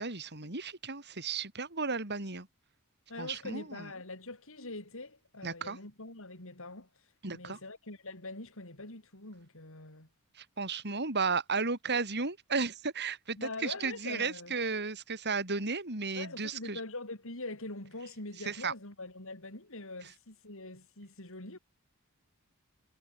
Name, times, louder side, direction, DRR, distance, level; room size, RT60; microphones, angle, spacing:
voice 1, 0.0-2.5 3.2-3.9 5.4-5.8 7.2-7.6 10.3-16.8 18.4-18.7, right 4 dB, 50° right, 4.4 m, -34 dB
voice 2, 3.1-6.9 7.3-10.1 13.4-14.5 16.2-21.6, left 2 dB, 65° left, 5.5 m, -43 dB
head